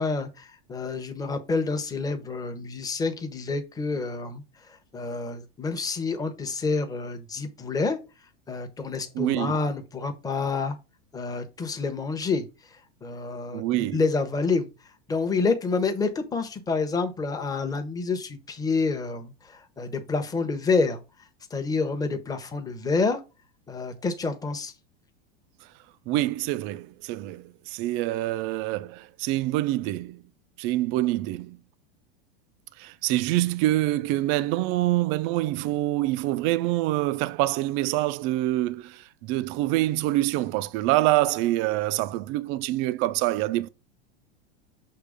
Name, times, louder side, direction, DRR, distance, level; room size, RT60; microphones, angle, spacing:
voice 1, 0.0-4.4 4.9-8.0 8.5-10.8 11.1-12.4 13.0-14.7 15.1-21.0 21.5-23.2 23.7-24.7, left 4 dB, 10° left, 0.8 m, -28 dB
voice 2, 9.1-9.6 13.5-14.0 26.1-30.2 30.6-31.6 32.8-43.7, right 16 dB, 40° right, 0.4 m, -26 dB
6.7 x 3.0 x 4.9 m
supercardioid pair, 130°, 31 cm